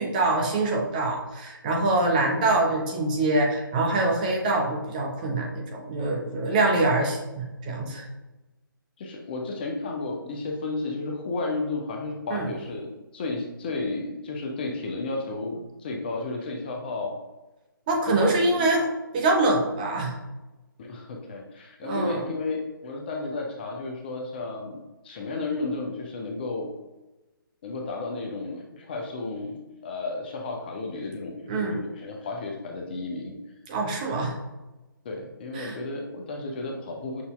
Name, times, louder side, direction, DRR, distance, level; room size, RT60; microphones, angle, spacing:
voice 1, 0.0-8.1 12.3-12.5 17.9-18.9 19.1-20.1 21.8-22.2 31.5-31.8 33.7-34.3 35.5-35.8, right 2 dB, 20° right, 0 dB, 0.5 m, -24 dB
voice 2, 9.0-17.2 18.1-18.7 20.8-24.8 25.0-26.7 27.6-33.3 35.0-37.2, left 3 dB, 25° left, 1 dB, 0.5 m, -33 dB
6.0 x 2.6 x 2.3 m, 1.1 s
figure-of-eight pair, 145°, 12 cm